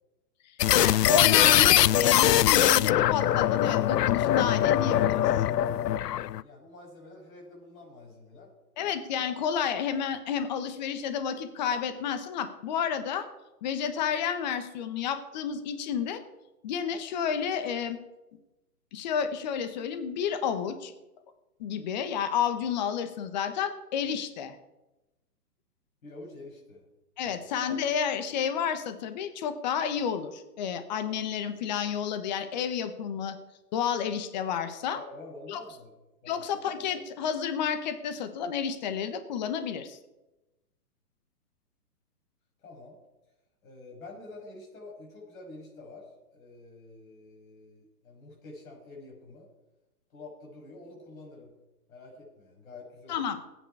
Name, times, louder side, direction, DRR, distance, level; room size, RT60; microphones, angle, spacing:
sound 1, 0.6-6.4, left 12 dB, 80° left, 0.5 m, -22 dB
voice 1, 0.7-5.2 8.8-13.3 13.6-16.2 16.6-18.0 18.9-20.9 21.6-24.6 27.2-33.4 33.7-35.0 35.5-35.6 36.3-40.0 53.1-53.4, left 7 dB, 30° left, 10 dB, 1.1 m, -30 dB
voice 2, 5.6-8.5 26.0-26.8 27.2-27.4 34.9-35.9 36.2-36.4 42.6-43.0 43.6-49.5 50.1-51.5 51.9-53.2, left 2 dB, 60° left, -2 dB, 6.0 m, -47 dB
17.5 x 9.3 x 4.8 m, 1.0 s
hypercardioid pair, 155°, 48 cm